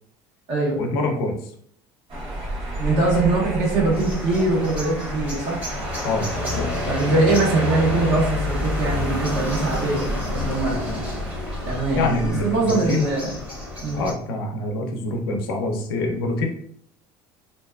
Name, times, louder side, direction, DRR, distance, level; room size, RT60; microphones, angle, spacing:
voice 1, 0.8-1.5 6.0-6.7 11.9-13.1 13.9-16.5, left 2 dB, 90° left, 3 dB, 0.5 m, -25 dB
sound 1, 2.1-12.3, right 1 dB, 45° right, 1.0 m, -33 dB
voice 2, 2.8-5.7 6.8-11.1 11.6-13.3 13.8-14.0, right 3 dB, 65° right, -4 dB, 1.4 m, -22 dB
sound 2, 3.9-14.1, left 2 dB, 15° right, 0.9 m, -29 dB
2.6 x 2.3 x 2.3 m, 0.63 s
supercardioid pair, 95°, 12 cm